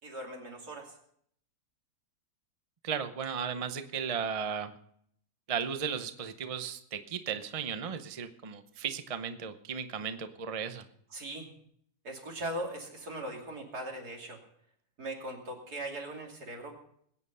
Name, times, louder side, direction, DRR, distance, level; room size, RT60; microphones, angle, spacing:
voice 1, 0.0-0.9 11.1-11.5 12.0-14.4 15.0-16.7, right 1 dB, 80° right, 0 dB, 3.4 m, -39 dB
voice 2, 2.8-4.7 5.5-10.8, right 7 dB, 30° right, 9 dB, 0.6 m, -35 dB
21.0 x 8.8 x 5.5 m, 0.68 s
omnidirectional pair, 1.6 m